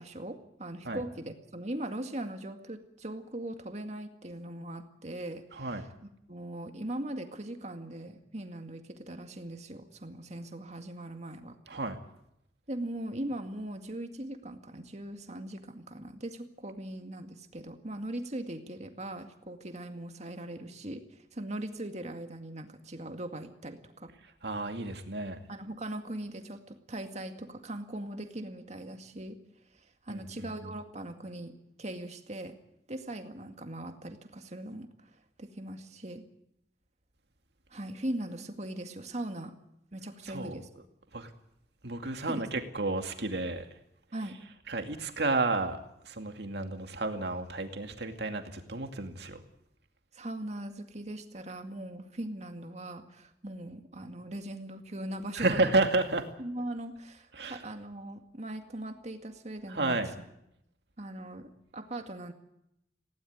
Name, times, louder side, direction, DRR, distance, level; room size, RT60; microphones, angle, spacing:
voice 1, 0.0-5.9 6.3-11.6 12.7-24.1 25.5-29.4 29.7-32.6 32.9-36.3 37.7-39.5 39.9-40.7 42.3-42.4 44.1-44.4 50.1-55.9 56.4-60.0 61.0-62.3, right 1 dB, 40° right, 6 dB, 2.1 m, -40 dB
voice 2, 5.5-5.9 11.7-12.0 24.4-25.4 30.1-30.7 40.3-40.8 41.1-41.3 41.8-43.7 44.2-44.3 44.6-49.4 55.3-56.3 57.3-57.6 59.7-60.1, right 2 dB, 70° right, 5 dB, 2.4 m, -32 dB
19.0 x 17.0 x 9.4 m, 0.80 s
head